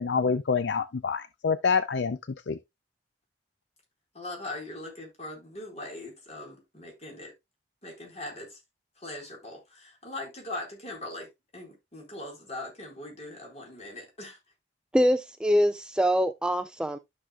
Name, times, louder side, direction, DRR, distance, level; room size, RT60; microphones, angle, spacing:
voice 1, 0.0-2.2 2.5-2.6, left 5 dB, 70° left, 0.5 m, -26 dB
voice 2, 4.1-7.3 7.8-8.6 9.0-14.4, left 2 dB, 35° left, 4.3 m, -40 dB
voice 3, 14.9-17.0, equal, 5° right, 0.3 m, -24 dB
12.5 x 6.1 x 2.3 m
head